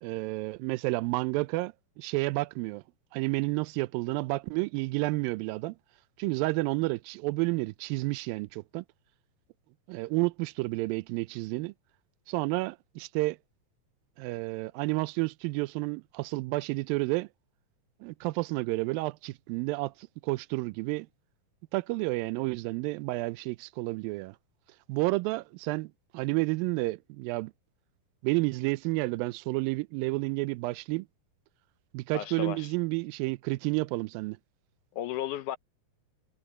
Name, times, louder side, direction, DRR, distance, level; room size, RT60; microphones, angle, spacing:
voice 1, 0.0-2.8 3.1-5.8 6.2-8.8 9.9-11.7 12.3-13.4 14.2-17.3 18.0-19.9 20.2-21.1 21.7-24.4 24.9-27.5 28.2-31.1 31.9-34.4, right 23 dB, 90° right, 2.3 m, -30 dB
voice 2, 32.1-32.7 34.9-35.6, left 12 dB, 75° left, 2.1 m, -34 dB
omnidirectional pair, 4.0 m